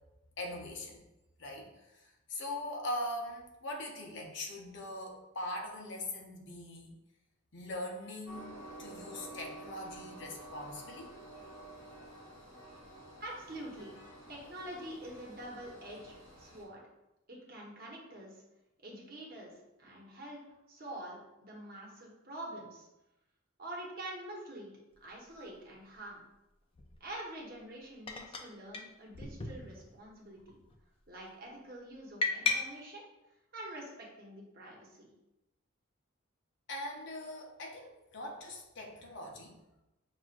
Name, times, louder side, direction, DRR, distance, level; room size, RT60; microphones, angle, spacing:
voice 1, 0.4-1.0 1.4-6.9 7.5-11.1 36.7-39.6, left 1 dB, 60° left, 0 dB, 0.7 m, -41 dB
Train, 8.3-16.6, right 1 dB, 80° left, 1.1 m, -50 dB
voice 2, 13.2-13.9 14.3-16.1 16.4-16.8 17.3-18.4 18.8-19.5 19.8-20.4 20.7-22.9 23.6-24.7 25.0-26.2 27.0-30.6 31.1-33.0 33.5-35.1, right 1 dB, 45° right, -3 dB, 0.9 m, -46 dB
sound 1, 25.0-25.1 26.7-27.0 28.1-28.5 28.7-28.8 29.1-30.0 30.4-30.8 32.2-32.6, left 4 dB, 25° left, 0.3 m, -35 dB
5.6 x 2.4 x 2.5 m, 0.96 s
head